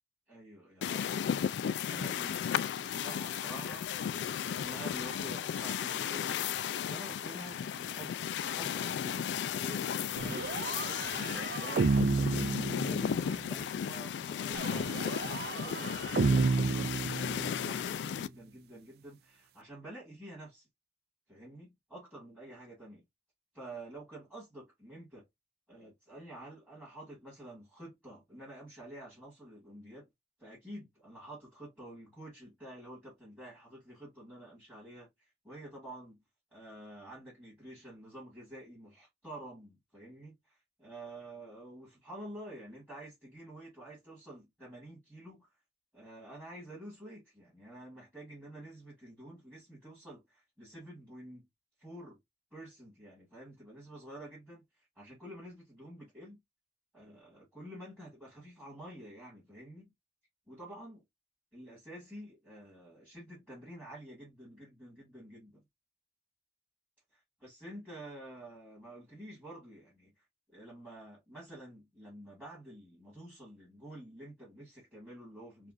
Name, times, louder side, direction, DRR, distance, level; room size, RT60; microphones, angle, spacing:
voice 1, 0.3-1.3 1.8-6.4 6.9-8.2 8.4-10.6 11.2-12.0 12.3-20.7 21.3-23.0 23.5-25.3 25.7-30.1 30.4-35.1 35.4-36.2 36.5-45.5 45.9-51.4 51.8-52.2 52.5-54.6 55.0-56.4 56.9-59.9 60.5-61.0 61.5-65.6 67.4-70.1 70.5-75.7, right 1 dB, 10° right, 2.2 m, -49 dB
sound 1, 0.8-18.3, left 8 dB, 80° left, 0.3 m, -35 dB
sound 2, 10.2-13.4 14.5-17.8, right 4 dB, 60° right, 0.4 m, -31 dB
4.7 x 2.5 x 2.5 m
head